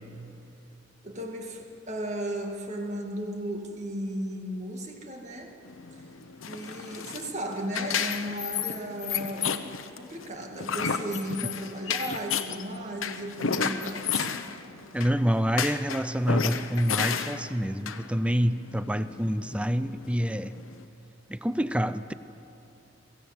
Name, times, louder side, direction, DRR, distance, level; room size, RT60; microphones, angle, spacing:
voice 1, 1.0-5.6 5.9-6.0 6.5-14.3, right 1 dB, 35° right, 2 dB, 2.2 m, -35 dB
sound 1, 5.7-20.8, left 6 dB, 90° left, 1.0 m, -33 dB
voice 2, 14.9-20.6 21.3-22.1, equal, 5° right, 13 dB, 0.5 m, -27 dB
23.0 x 16.5 x 7.9 m, 2.9 s
head